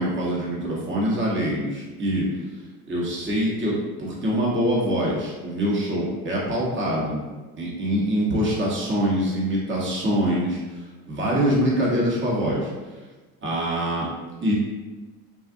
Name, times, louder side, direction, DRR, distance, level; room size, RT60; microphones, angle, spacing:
voice 1, 0.0-2.2 2.9-7.2 7.6-10.6 11.1-12.7 13.4-14.1 14.4-14.5, equal, 25° right, -5 dB, 1.1 m, -24 dB
3.7 x 2.4 x 2.5 m, 1.2 s
supercardioid pair, 80°, 43 cm